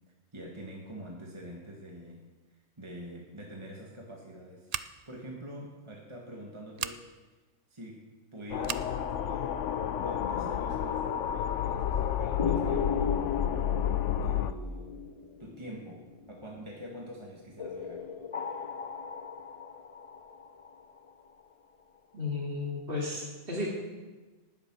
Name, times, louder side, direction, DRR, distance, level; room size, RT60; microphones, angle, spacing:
voice 1, 0.3-2.2 2.5-7.1 7.7-9.6 10.0-13.6 14.2-15.0 15.4-18.0, equal, 25° right, -2 dB, 1.8 m, -45 dB
Scissors, 4.7-5.2 6.7-7.0 8.6-8.9, right 8 dB, 70° right, 0.3 m, -36 dB
sound 1, 8.5-14.5, left 9 dB, 75° left, 1.0 m, -30 dB
sound 2, 12.4-16.6 17.6-21.4, left 5 dB, 40° left, 0.5 m, -37 dB
voice 2, 22.1-23.7, left 3 dB, 45° right, -4 dB, 2.8 m, -33 dB
19.0 x 7.8 x 6.2 m, 1.2 s
omnidirectional pair, 1.3 m